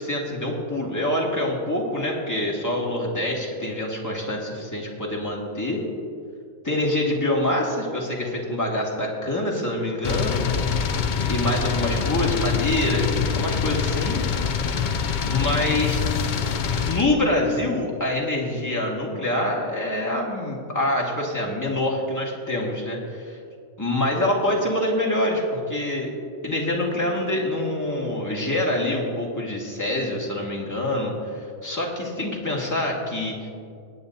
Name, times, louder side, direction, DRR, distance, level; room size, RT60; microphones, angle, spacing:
voice 1, 0.0-5.8 6.6-10.4 11.3-14.2 15.3-16.0 16.7-23.4 23.8-26.1 26.4-33.3, left 1 dB, 10° left, -3 dB, 1.8 m, -25 dB
sound 1, 10.0-17.1, left 6 dB, 65° left, 0.4 m, -25 dB
21.5 x 9.4 x 2.7 m, 2.4 s
omnidirectional pair, 1.5 m